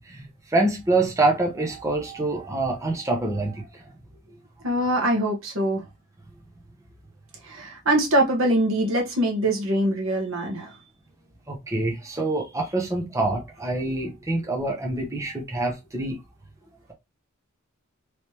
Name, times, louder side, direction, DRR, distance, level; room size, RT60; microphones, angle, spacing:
voice 1, 0.0-3.8 11.5-16.2, right 2 dB, 15° right, 0.7 m, -26 dB
voice 2, 4.6-5.8 7.4-10.7, right 1 dB, 75° right, 1.2 m, -23 dB
3.2 x 3.2 x 2.9 m
head